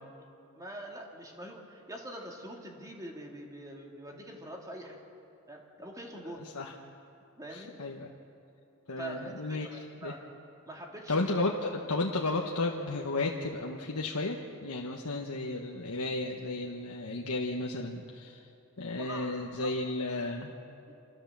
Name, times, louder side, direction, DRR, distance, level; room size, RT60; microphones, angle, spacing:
voice 1, 0.5-5.0 5.5-6.4 7.4-7.7 9.0-10.2 10.6-11.3 18.9-19.7 20.9-21.0, right 1 dB, 15° right, 0 dB, 2.6 m, -44 dB
voice 2, 6.4-6.7 7.5-8.1 8.9-10.1 11.1-18.4 18.8-20.5, left 2 dB, 85° left, -1 dB, 1.3 m, -33 dB
27.5 x 14.0 x 7.4 m, 2.7 s
head